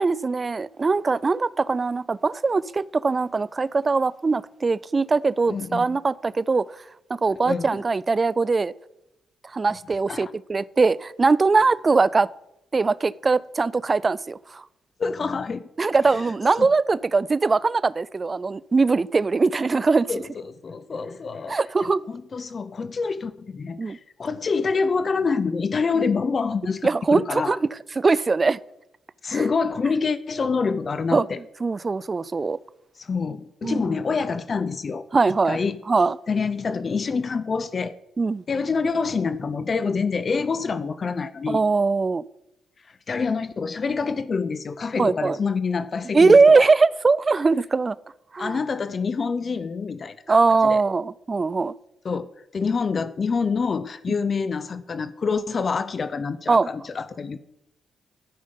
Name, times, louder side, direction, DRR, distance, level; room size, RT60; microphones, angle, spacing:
voice 1, 0.0-6.7 7.2-8.7 9.5-12.3 12.7-14.6 15.8-20.1 21.5-22.0 23.8-24.0 26.8-27.6 28.0-28.6 29.3-29.4 31.1-31.3 31.6-32.6 33.6-34.0 35.1-35.6 35.9-36.2 38.2-38.4 41.5-42.2 45.0-45.4 46.1-48.0 48.3-48.6 50.3-51.7 56.5-56.7, right 4 dB, 35° right, 0.3 m, -21 dB
voice 2, 5.5-5.9 7.3-7.8 10.1-10.3 15.0-15.6 16.1-16.3 16.6-16.7 20.1-27.6 29.2-31.4 33.0-35.0 35.5-35.8 36.3-37.9 38.5-41.6 42.9-46.7 48.4-50.8 52.0-57.4, left 5 dB, 45° left, 0.5 m, -26 dB
12.5 x 5.5 x 5.2 m
cardioid pair, 75°, 0 cm